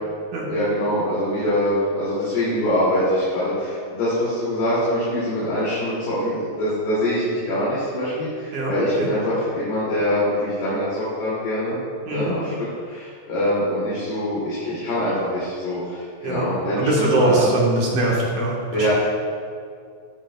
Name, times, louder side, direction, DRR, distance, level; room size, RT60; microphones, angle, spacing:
voice 1, 0.5-10.9 11.2-11.8 12.1-17.5 18.7-18.9, left 1 dB, 60° left, -10 dB, 4.1 m, -24 dB
voice 2, 16.8-18.9, right 2 dB, 65° right, -3 dB, 1.9 m, -22 dB
16.0 x 9.3 x 2.2 m, 2.2 s
omnidirectional pair, 5.2 m